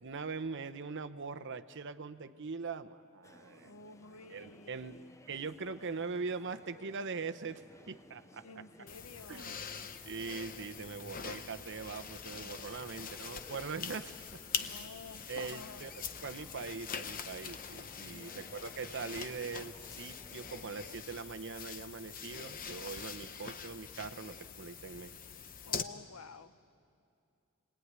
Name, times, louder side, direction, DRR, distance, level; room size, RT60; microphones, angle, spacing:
voice 1, 0.0-3.7 4.3-5.0 5.3-8.4 9.3-9.6 10.0-14.7 15.3-15.9 16.2-25.2, right 4 dB, 55° right, 9 dB, 0.8 m, -42 dB
sound 1, 3.2-21.0, left 2 dB, 15° left, 0.5 m, -59 dB
voice 2, 3.6-5.1 8.4-9.7 12.8-13.4 14.5-15.8 18.1-18.8 25.7-26.6, left 4 dB, 80° left, 12 dB, 0.8 m, -52 dB
sound 2, 8.9-25.8, left 6 dB, 40° left, 0.9 m, -44 dB
27.0 x 20.0 x 9.6 m, 2.5 s
head